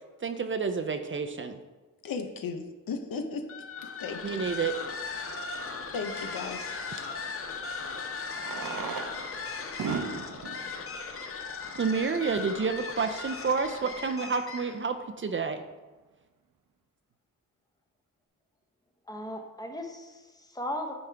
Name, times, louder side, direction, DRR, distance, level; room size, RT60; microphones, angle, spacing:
voice 1, 0.2-1.6 4.2-4.8 11.8-15.6, right 5 dB, 35° right, 7 dB, 0.5 m, -29 dB
voice 2, 2.0-3.5 3.8-4.4 5.9-7.1, left 4 dB, 80° left, 7 dB, 0.8 m, -36 dB
sound 1, 3.4-14.9, left 4 dB, 40° left, 0.8 m, -38 dB
Fireworks, 4.8-4.9 7.1-7.2 8.3-12.1 12.8-12.9 13.1-13.2 13.4-13.5 14.0-14.3, right 5 dB, 75° right, 0.8 m, -38 dB
voice 3, 19.1-20.9, left 1 dB, 10° left, 3 dB, 0.9 m, -37 dB
9.3 x 4.9 x 3.4 m, 1.2 s
wide cardioid pair, 105°, 34 cm